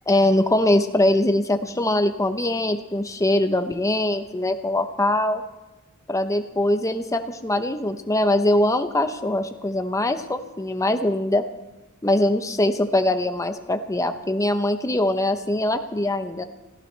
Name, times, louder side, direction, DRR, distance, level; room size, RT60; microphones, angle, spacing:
voice 1, 0.1-5.4 6.1-11.4 12.0-16.4, left 1 dB, 15° left, 7 dB, 0.8 m, -22 dB
24.5 x 15.5 x 3.3 m, 1.1 s
head